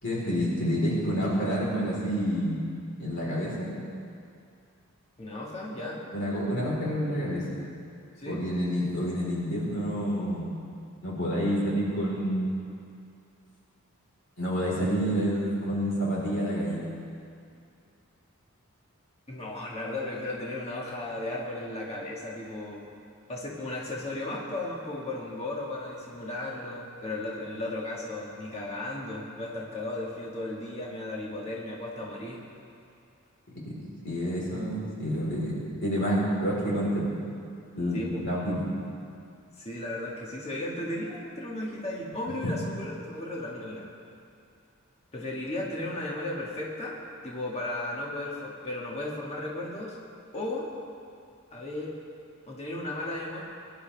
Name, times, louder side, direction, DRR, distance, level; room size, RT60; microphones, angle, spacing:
voice 1, 0.0-2.6 3.0-3.7 6.1-7.4 8.3-10.5 11.0-12.5 14.4-16.8 34.0-35.5 35.8-37.1 37.7-38.6 42.4-42.5, equal, 60° left, -6 dB, 4.2 m, -28 dB
voice 2, 5.2-6.0 8.2-8.4 19.3-22.8 23.3-32.4 37.9-38.2 39.6-43.9 45.1-47.0 47.2-50.0 50.3-50.7 51.5-52.0 52.5-53.4, left 1 dB, 30° left, -4 dB, 1.8 m, -35 dB
22.0 x 11.5 x 3.5 m, 2.4 s
head